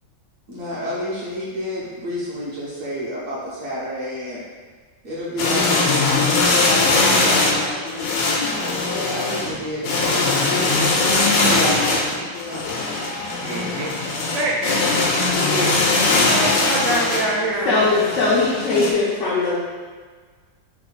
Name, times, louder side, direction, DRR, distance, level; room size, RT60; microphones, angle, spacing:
voice 1, 0.5-4.4 5.0-7.8 8.4-10.7 11.4-12.8, equal, 60° right, -7 dB, 1.0 m, -30 dB
sound 1, 5.4-18.9, left 3 dB, 90° left, 1.3 m, -20 dB
voice 2, 13.4-14.0 14.3-14.9 15.4-18.1, right 2 dB, 75° right, -4 dB, 0.6 m, -26 dB
voice 3, 17.7-19.6, left 3 dB, 75° left, -7 dB, 0.7 m, -19 dB
3.3 x 2.1 x 3.8 m, 1.5 s
omnidirectional pair, 1.9 m